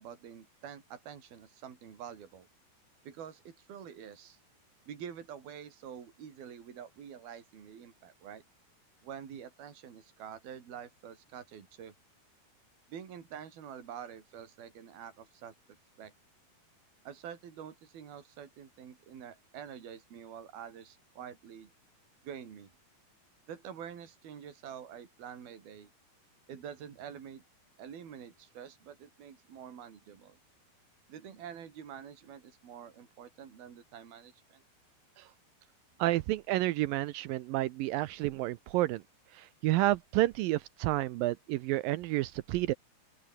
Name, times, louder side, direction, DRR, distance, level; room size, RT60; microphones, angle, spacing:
voice 1, 0.0-2.5 3.0-4.4 4.9-8.4 9.0-11.9 12.9-15.5 16.0-16.1 17.1-21.7 22.2-22.7 23.5-25.9 26.5-27.4 27.8-30.4 31.1-34.6, right 8 dB, 65° right, 5.2 m, -47 dB
voice 2, 36.0-39.0 39.3-42.7, right 17 dB, 85° right, 2.1 m, -30 dB
open air
omnidirectional pair, 4.7 m